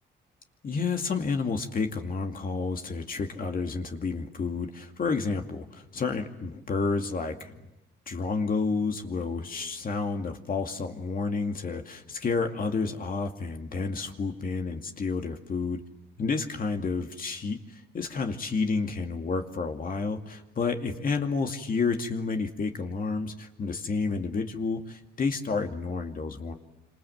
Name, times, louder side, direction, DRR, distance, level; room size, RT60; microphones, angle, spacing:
voice 1, 0.6-7.5 8.1-15.8 16.2-26.5, left 4 dB, 45° left, 4 dB, 2.4 m, -30 dB
27.5 x 26.5 x 8.0 m, 0.98 s
cardioid pair, 90°, 20 cm